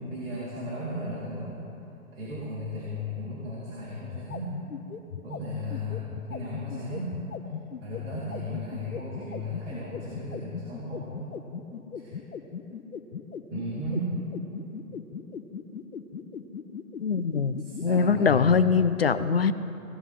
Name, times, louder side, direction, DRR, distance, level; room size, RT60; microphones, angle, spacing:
voice 1, 0.0-1.6 2.1-4.5 5.2-7.1 7.8-11.3 11.9-12.2 13.5-14.1 17.6-18.5, left 1 dB, 60° right, -8 dB, 4.3 m, -35 dB
sound 1, 4.0-18.0, left 7 dB, 70° left, 1.1 m, -38 dB
voice 2, 17.0-19.5, left 5 dB, 45° left, 13 dB, 0.5 m, -23 dB
18.0 x 17.0 x 3.8 m, 2.9 s
hypercardioid pair, 170°, 44 cm